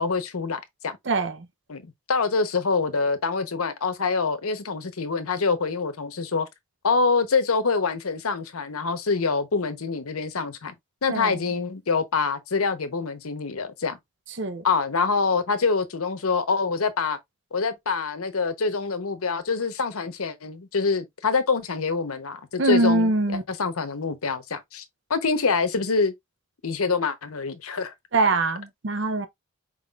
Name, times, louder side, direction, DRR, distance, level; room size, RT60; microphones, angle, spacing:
voice 1, 0.0-1.0 1.7-6.5 6.8-10.7 11.0-14.0 14.6-17.2 17.5-23.1 23.5-24.8 25.1-26.1 26.6-27.9, left 4 dB, 85° left, 0.8 m, -25 dB
voice 2, 1.1-1.5 11.1-11.4 14.4-14.6 22.6-23.4 28.1-29.3, right 2 dB, 55° right, 0.6 m, -23 dB
4.7 x 3.8 x 2.3 m
head